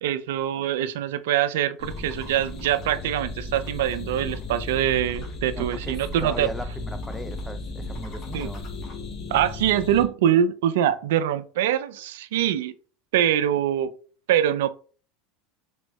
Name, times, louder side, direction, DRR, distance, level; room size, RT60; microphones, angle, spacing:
voice 1, 0.0-6.5 8.3-8.5 9.3-12.7 13.1-13.9 14.3-14.7, right 10 dB, 80° right, 0.3 m, -24 dB
sound 1, 1.8-10.0, left 2 dB, 45° left, 1.1 m, -35 dB
voice 2, 5.4-8.6, left 1 dB, 10° left, 0.4 m, -38 dB
3.4 x 2.1 x 3.0 m
hypercardioid pair, 95°, 0 cm